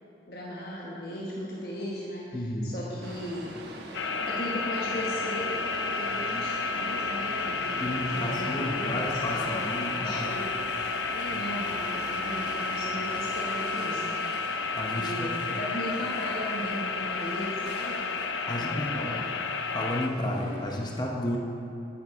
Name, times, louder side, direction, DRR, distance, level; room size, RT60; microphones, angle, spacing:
voice 1, 0.3-3.6 4.3-18.0 18.5-19.3, equal, 55° left, -5 dB, 1.2 m, -37 dB
voice 2, 2.3-2.8 7.8-10.4 14.7-15.5 18.5-19.2 19.7-21.4, left 1 dB, 25° left, -1 dB, 0.8 m, -32 dB
sound 1, 3.0-20.7, right 1 dB, 70° right, 1.1 m, -44 dB
sound 2, 3.9-20.1, left 4 dB, 85° left, 0.5 m, -31 dB
13.0 x 8.8 x 3.6 m, 2.7 s
head